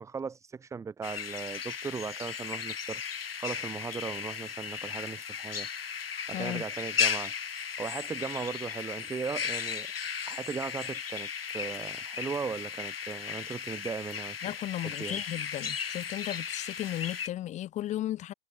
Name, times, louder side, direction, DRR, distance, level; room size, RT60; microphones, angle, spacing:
voice 1, 0.0-5.7 6.3-7.3 7.8-9.9 10.3-14.5 14.8-15.2, right 5 dB, 10° right, 1.7 m, -38 dB
sound 1, 1.0-17.3, left 7 dB, 80° left, 1.5 m, -36 dB
voice 2, 6.3-6.6 14.4-18.3, left 13 dB, 25° left, 2.9 m, -35 dB
hypercardioid pair, 120°, 29 cm